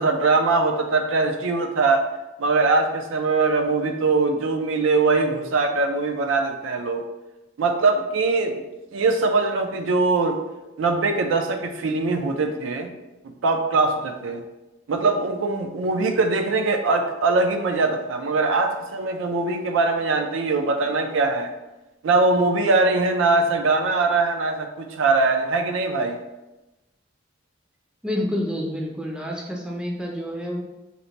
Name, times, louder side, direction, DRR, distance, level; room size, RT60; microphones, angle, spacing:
voice 1, 0.0-2.1 2.4-7.0 7.6-8.6 8.9-10.4 10.8-12.9 13.4-14.4 14.9-21.5 22.0-26.2, right 3 dB, 85° right, 5 dB, 0.4 m, -22 dB
voice 2, 28.0-30.6, left 1 dB, 5° right, -2 dB, 0.4 m, -28 dB
2.8 x 2.1 x 4.0 m, 1.0 s
head